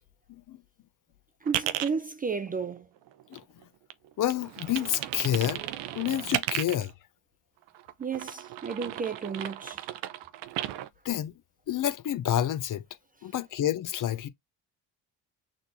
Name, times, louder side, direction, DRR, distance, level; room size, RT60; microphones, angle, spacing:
voice 1, 1.4-2.9 8.0-10.0, right 5 dB, 20° right, 0.4 m, -33 dB
sound 1, 1.5-1.9 2.5-3.6 3.9-6.9 7.7-10.9, right 13 dB, 75° right, 0.7 m, -35 dB
voice 2, 4.2-5.6 5.9-6.9 11.0-11.3 11.7-12.8 13.2-14.3, left 11 dB, 45° left, 0.7 m, -28 dB
6.5 x 2.8 x 2.7 m
supercardioid pair, 70°, 44 cm